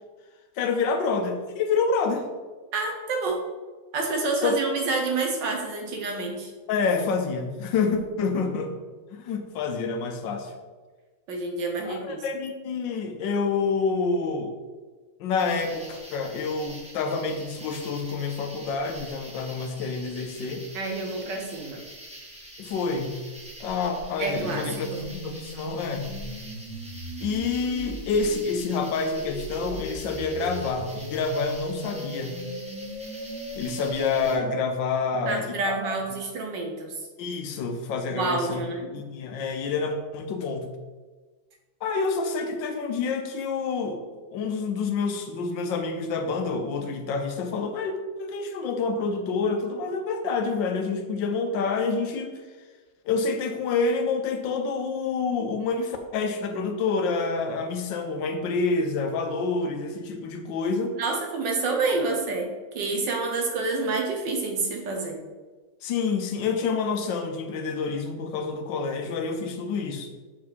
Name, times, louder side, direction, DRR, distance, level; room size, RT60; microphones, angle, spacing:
voice 1, 0.6-2.3 4.4-4.6 6.7-8.7 9.1-10.5 11.8-14.5 15.2-20.6 22.6-23.1 23.6-24.9 25.2-26.1 27.2-32.4 33.6-36.0 37.2-38.6 38.9-40.7 41.8-44.0 44.3-52.4 53.0-61.0 65.8-70.1, left 4 dB, 85° left, 5 dB, 1.5 m, -28 dB
voice 2, 2.7-3.4 3.9-6.5 11.3-12.2 20.7-21.8 24.2-24.6 24.9-25.1 35.1-36.9 38.1-38.9 61.0-62.5 62.7-65.2, right 3 dB, 75° right, 2 dB, 1.8 m, -28 dB
sound 1, 15.4-34.4, right 1 dB, 5° right, 0.9 m, -45 dB
sound 2, 24.4-34.4, equal, 35° right, 1.0 m, -37 dB
6.4 x 4.7 x 4.1 m, 1.3 s
omnidirectional pair, 1.9 m